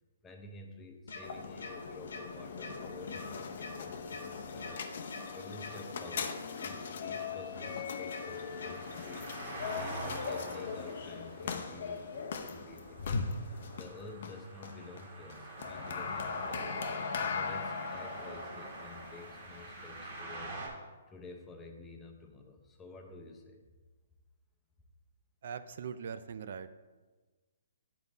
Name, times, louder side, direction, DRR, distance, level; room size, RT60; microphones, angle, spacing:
voice 1, 0.2-5.1 5.3-23.6, left 3 dB, 15° left, 3 dB, 0.7 m, -51 dB
sound 1, 1.1-1.2 1.6-1.7 2.1-2.2 2.6-2.7 3.1-3.2 3.6-3.7 4.1-4.2 4.6-4.7 5.1-5.2 5.6-5.7 6.1-6.2 6.6-6.7 7.1-7.2 7.6-7.7 8.1-8.2 8.6-8.7, left 4 dB, 80° left, 1.1 m, -44 dB
sound 2, 1.1-20.2, left 5 dB, 60° left, 0.6 m, -40 dB
sound 3, 7.5-20.7, right 2 dB, 45° right, 1.8 m, -46 dB
voice 2, 25.4-26.7, right 7 dB, 60° right, 12 dB, 0.3 m, -41 dB
9.2 x 4.0 x 3.9 m, 1.3 s
hypercardioid pair, 150°, 0 cm